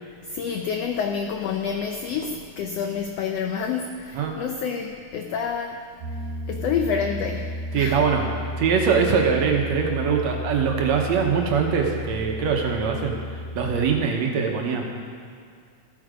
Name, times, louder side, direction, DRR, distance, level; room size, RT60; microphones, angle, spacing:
voice 1, 0.2-5.8 6.5-8.0, left 6 dB, 85° left, 4 dB, 1.4 m, -28 dB
Piano, 6.0-14.1, equal, 90° right, 2.7 m, -33 dB
voice 2, 7.7-8.3 8.6-13.1 13.6-14.8, right 6 dB, 65° right, 1 dB, 2.1 m, -22 dB
14.5 x 8.6 x 5.1 m, 2.2 s
omnidirectional pair, 3.6 m